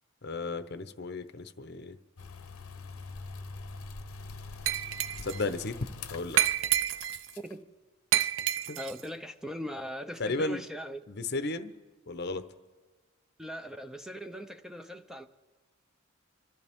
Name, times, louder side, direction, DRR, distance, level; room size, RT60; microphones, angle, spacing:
voice 1, 0.2-1.9 5.2-5.8 6.1-6.4 8.7-8.8 10.2-10.6 11.1-11.7 12.1-12.5, left 3 dB, 50° left, 0.7 m, -34 dB
sound 1, 2.2-7.5, left 4 dB, 80° left, 0.9 m, -44 dB
Glass, 4.7-5.4 6.4-7.3 8.1-9.0, right 11 dB, 60° right, 0.4 m, -28 dB
voice 2, 8.8-11.0 13.4-15.3, equal, ahead, 0.5 m, -40 dB
27.5 x 13.5 x 3.6 m
head